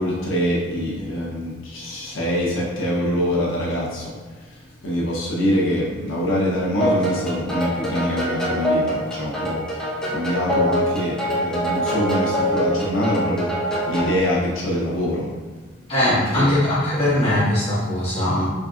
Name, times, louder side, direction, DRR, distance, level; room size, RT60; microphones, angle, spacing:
voice 1, 0.0-15.4 16.0-16.5, equal, 90° left, -5 dB, 0.7 m, -24 dB
sound 1, 6.8-14.2, equal, 5° left, 0.8 m, -24 dB
voice 2, 15.9-18.5, left 1 dB, 30° left, -11 dB, 1.4 m, -20 dB
3.7 x 3.5 x 2.4 m, 1.4 s
head